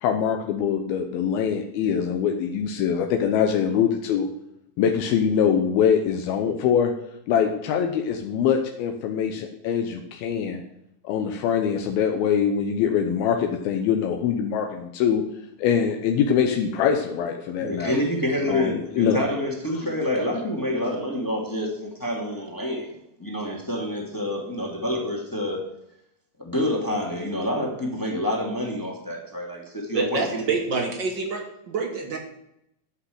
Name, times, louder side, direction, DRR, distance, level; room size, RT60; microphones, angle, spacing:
voice 1, 0.0-4.3 4.8-6.9 7.3-10.6 11.0-15.2 15.6-18.0 18.5-19.2 19.8-19.9, left 7 dB, 85° left, 4 dB, 2.8 m, -23 dB
voice 2, 17.6-25.6 26.4-30.5, left 1 dB, 10° left, -1 dB, 1.5 m, -27 dB
voice 3, 29.9-32.2, right 4 dB, 55° right, 2 dB, 1.2 m, -27 dB
12.5 x 5.9 x 7.8 m, 0.80 s
omnidirectional pair, 4.2 m